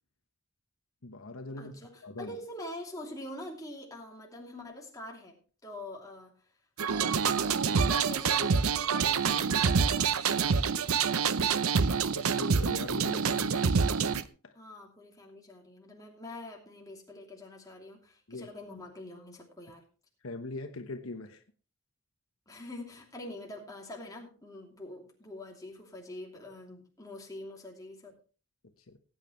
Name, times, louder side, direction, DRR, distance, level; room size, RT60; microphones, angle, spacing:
voice 1, 1.0-1.7 2.0-2.3 12.1-13.6 14.4-14.5 18.3-18.5 20.2-21.4 28.9-29.0, left 2 dB, 70° left, 1.1 m, -41 dB
voice 2, 1.6-6.5 6.8-10.9 14.5-19.8 22.5-28.1, left 1 dB, 15° left, 2.8 m, -45 dB
sound 1, 6.8-14.2, right 6 dB, 85° right, 0.7 m, -27 dB
18.5 x 9.0 x 3.1 m
head